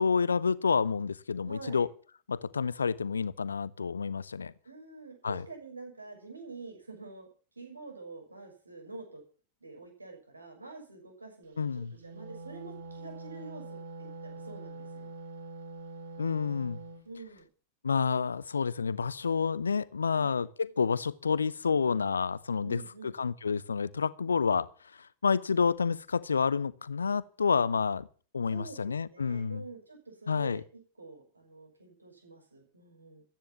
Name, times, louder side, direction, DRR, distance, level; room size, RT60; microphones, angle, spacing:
voice 1, 0.0-1.9 2.3-4.5 5.2-5.4 11.6-11.9 16.2-16.8 17.8-24.7 25.0-28.1 28.3-29.6 30.3-30.6, left 5 dB, 75° left, 0.9 m, -29 dB
voice 2, 1.4-1.9 4.6-7.3 7.6-9.2 9.6-15.1 17.0-17.5 20.1-20.4 22.6-23.1 28.5-33.2, right 3 dB, 80° right, 6.1 m, -47 dB
Wind instrument woodwind instrument, 11.9-17.0, right 3 dB, 60° right, 2.6 m, -44 dB
14.5 x 10.5 x 7.1 m
figure-of-eight pair, 90°, 0 cm